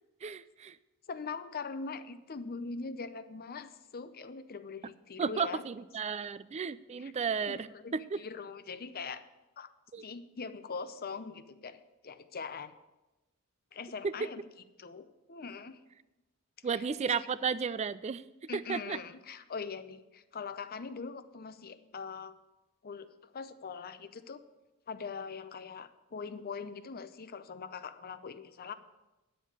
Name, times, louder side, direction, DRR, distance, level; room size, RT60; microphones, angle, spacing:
voice 1, 0.2-0.8 5.2-8.2 9.9-10.0 14.0-14.3 16.6-18.2 18.5-19.0, right 6 dB, 30° right, 17 dB, 0.3 m, -33 dB
voice 2, 1.1-5.6 7.0-7.1 7.5-9.2 9.6-9.7 10.0-12.7 13.7-14.4 14.8-15.8 16.7-17.1 18.5-22.3 22.8-24.4 24.9-28.7, left 5 dB, 45° left, 12 dB, 0.6 m, -42 dB
10.0 x 7.3 x 7.3 m, 1.1 s
head